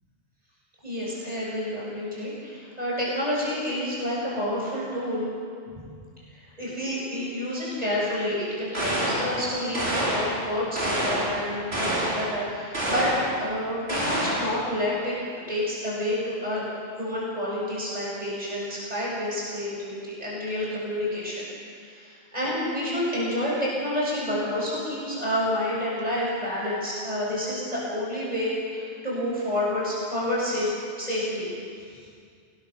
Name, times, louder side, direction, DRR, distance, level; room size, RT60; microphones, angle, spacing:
voice 1, 0.8-5.3 6.3-15.2 15.5-16.7 17.0-21.5 21.8-30.7 31.0-31.5 31.9-32.0, left 1 dB, 40° right, -6 dB, 8.3 m, -29 dB
sound 1, 8.7-9.4 9.7-10.4 10.8-11.4 11.7-12.3 12.7-13.3 13.9-14.5, right 1 dB, 75° right, 5.9 m, -27 dB
28.0 x 21.5 x 6.6 m, 2.2 s
omnidirectional pair, 1.1 m